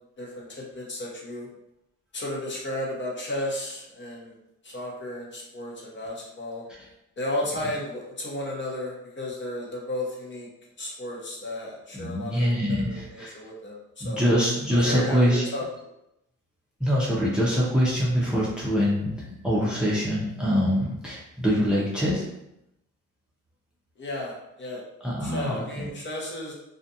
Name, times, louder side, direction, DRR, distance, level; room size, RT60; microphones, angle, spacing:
voice 1, 0.2-1.5 2.1-4.3 4.6-6.6 7.2-10.5 10.8-12.4 12.7-14.2 14.7-15.6 24.0-24.8 25.2-26.5, left 1 dB, 40° left, -3 dB, 0.9 m, -34 dB
voice 2, 11.9-13.3 14.0-15.4 16.8-22.3 25.0-25.9, equal, 5° right, -5 dB, 0.6 m, -24 dB
2.4 x 2.4 x 2.7 m, 0.84 s
cardioid pair, 90°, 30 cm